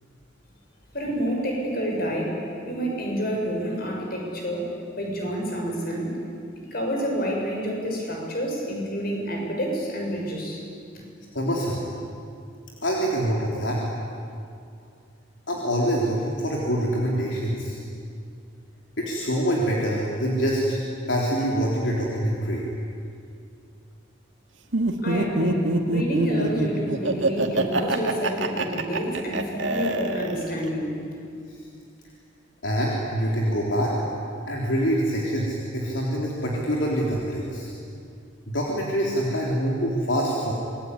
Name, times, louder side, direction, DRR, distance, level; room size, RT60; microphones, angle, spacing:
voice 1, 0.9-2.4 2.6-4.7 4.9-6.1 6.7-10.6 10.9-11.0 25.0-31.0, equal, 50° left, 0 dB, 7.0 m, -28 dB
voice 2, 11.3-11.9 12.8-13.8 15.5-17.8 19.0-20.8 21.1-22.6 31.5-31.6 32.6-33.9 34.5-37.7 38.5-40.5, equal, 70° left, -3 dB, 3.8 m, -25 dB
Laughter, 24.7-30.7, right 2 dB, 80° right, 2.3 m, -25 dB
26.5 x 22.0 x 9.9 m, 2.4 s
head